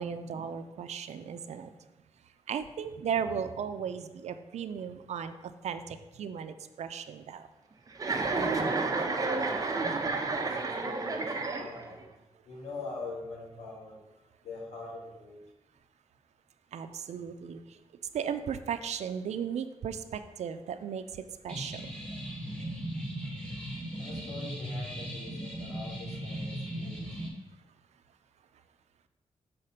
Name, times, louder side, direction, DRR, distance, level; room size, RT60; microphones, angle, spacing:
voice 1, 0.0-1.7 2.5-5.3 5.6-7.4 16.7-17.6 18.1-21.0 21.4-21.8, right 7 dB, 85° right, 9 dB, 0.5 m, -36 dB
Chuckle chortle, 8.0-12.0, right 3 dB, 30° right, 0.8 m, -30 dB
voice 2, 8.6-12.1 12.5-14.0 14.4-15.4 24.0-27.1, left 3 dB, 80° left, -3 dB, 2.2 m, -44 dB
sound 1, 21.5-27.3, equal, 10° left, 1.4 m, -37 dB
6.6 x 4.1 x 5.6 m, 1.0 s
wide cardioid pair, 110°, 11 cm